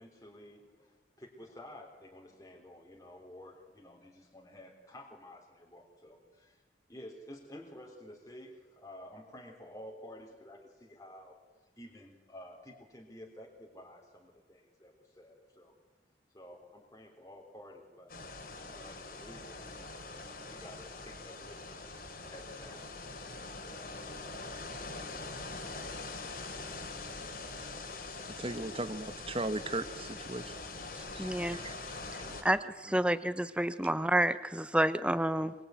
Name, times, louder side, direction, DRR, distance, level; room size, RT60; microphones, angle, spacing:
voice 1, 0.0-6.6 6.9-11.4 11.8-15.7 16.3-18.2 18.7-20.1 20.5-23.1, left 1 dB, 20° left, 0 dB, 3.5 m, -52 dB
sound 1, 18.1-32.4, left 3 dB, 55° left, 3.7 m, -43 dB
voice 2, 28.3-30.6 31.1-31.7 32.2-32.4 32.9-33.1, right 2 dB, 30° right, 11 dB, 1.4 m, -38 dB
voice 3, 31.0-31.6 32.4-35.5, right 1 dB, 5° right, 13 dB, 0.9 m, -29 dB
24.5 x 23.0 x 9.4 m, 1.3 s
head